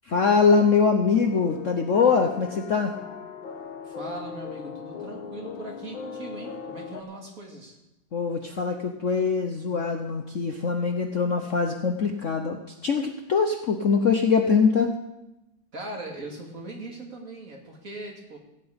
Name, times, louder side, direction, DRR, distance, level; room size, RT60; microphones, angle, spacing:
voice 1, 0.1-2.9 8.1-15.0, left 5 dB, 50° left, 4 dB, 1.0 m, -23 dB
sound 1, 1.1-7.0, left 6 dB, 75° left, 1.8 m, -39 dB
voice 2, 3.8-7.8 15.7-18.4, right 2 dB, 40° right, -1 dB, 2.8 m, -39 dB
16.0 x 6.0 x 8.7 m, 0.90 s
omnidirectional pair, 2.1 m